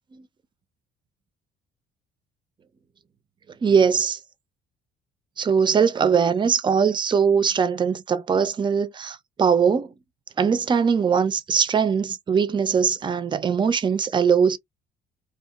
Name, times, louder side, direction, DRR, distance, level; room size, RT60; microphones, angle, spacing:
voice 1, 3.6-4.2 5.4-9.9 10.4-14.6, right 6 dB, 30° right, 0.5 m, -21 dB
2.8 x 2.3 x 2.3 m
cardioid pair, 110°, 17 cm